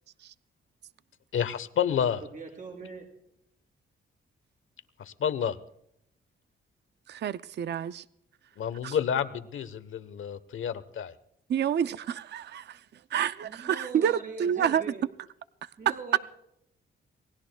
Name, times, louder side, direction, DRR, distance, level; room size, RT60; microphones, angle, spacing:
voice 1, 1.3-2.2 5.0-5.6 8.6-11.1, left 8 dB, 75° left, 1.0 m, -29 dB
voice 2, 2.0-3.1 13.4-15.1 15.8-16.2, right 4 dB, 40° right, 6.0 m, -42 dB
voice 3, 7.1-8.0 8.8-9.0 11.5-12.8 13.1-14.8, right 9 dB, 55° right, 0.5 m, -29 dB
27.5 x 19.0 x 2.3 m
wide cardioid pair, 130°, 21 cm